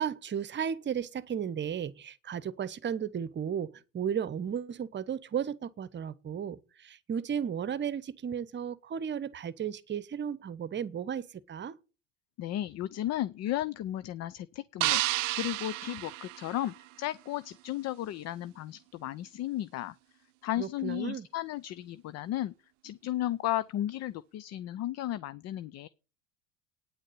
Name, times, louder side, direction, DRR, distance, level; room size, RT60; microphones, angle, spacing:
voice 1, 0.0-3.7 3.9-11.8 20.6-21.3, right 8 dB, 30° right, 1.0 m, -34 dB
voice 2, 12.4-15.0 15.3-19.9 20.4-22.5 22.8-25.9, left 13 dB, 45° left, 0.7 m, -34 dB
sound 1, 14.8-17.1, right 19 dB, 80° right, 0.6 m, -31 dB
9.7 x 6.5 x 8.8 m
hypercardioid pair, 90°, 37 cm